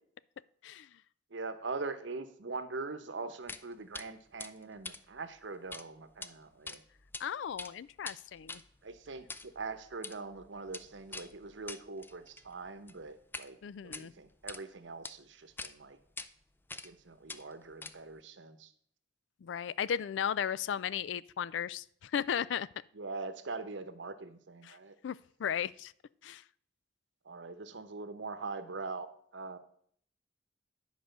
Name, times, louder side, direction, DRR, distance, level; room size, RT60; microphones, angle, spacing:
voice 1, 1.3-6.8 8.8-16.0 16.8-18.7 22.9-24.9 27.2-29.1 29.3-29.6, right 3 dB, 90° right, 11 dB, 0.9 m, -42 dB
sound 1, 3.5-3.6 3.9-4.1 4.4-5.8 6.1-6.3 6.7-7.2 7.5-13.5 13.8-14.6 15.0-15.1 15.6-15.7 16.2-16.3 16.7-17.0 17.3-18.2, left 3 dB, 10° left, 0.4 m, -45 dB
voice 2, 7.2-8.6 13.6-14.1 19.4-22.7 24.6-24.8 25.0-25.9 26.2-26.4, left 8 dB, 80° left, 19 dB, 0.3 m, -35 dB
10.5 x 4.8 x 6.6 m, 0.63 s
head